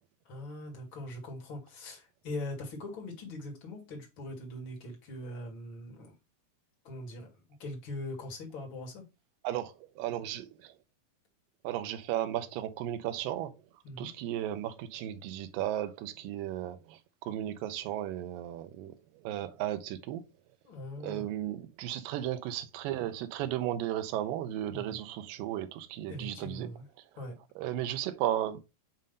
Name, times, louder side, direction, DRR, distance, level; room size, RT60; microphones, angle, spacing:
voice 1, 0.3-6.2 6.8-9.0 13.8-14.1 20.6-21.2 24.7-25.0 26.1-26.9 27.2-27.4, left 1 dB, 40° left, 2.1 m, -41 dB
voice 2, 9.4-10.7 11.6-13.5 14.0-18.9 19.2-20.2 21.0-26.7 27.6-28.6, right 12 dB, 75° right, 2.3 m, -35 dB
7.5 x 2.7 x 5.2 m
omnidirectional pair, 4.3 m